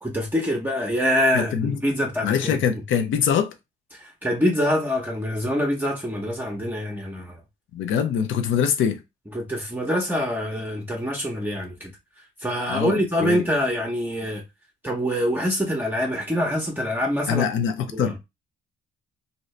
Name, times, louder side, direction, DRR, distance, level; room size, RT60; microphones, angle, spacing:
voice 1, 0.0-2.8 3.9-7.4 9.3-11.9 12.4-14.4 14.8-17.5 17.9-18.1, equal, 10° right, 0.7 m, -25 dB
voice 2, 1.3-1.8 2.2-3.5 7.7-9.0 12.7-13.4 17.3-18.2, left 8 dB, 80° left, 0.6 m, -23 dB
2.7 x 2.6 x 3.1 m
cardioid pair, 90°, 20 cm